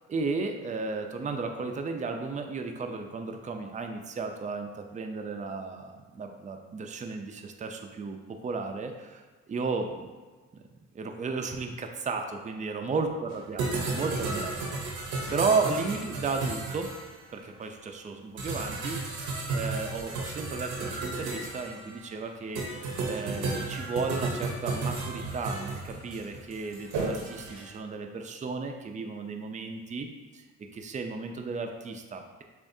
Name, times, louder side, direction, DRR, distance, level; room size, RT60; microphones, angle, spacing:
voice 1, 0.1-10.1 10.5-10.6 10.9-13.6 13.9-14.5 15.0-15.1 15.3-16.9 17.3-19.0 19.5-22.7 23.1-30.4 30.7-32.4, right 4 dB, 25° right, 4 dB, 0.5 m, -34 dB
sound 1, 13.3-13.4 13.6-17.1 18.4-22.0 22.5-27.6, right 3 dB, 80° right, 1.0 m, -33 dB
7.0 x 2.5 x 2.7 m, 1.4 s
cardioid pair, 90°, 30 cm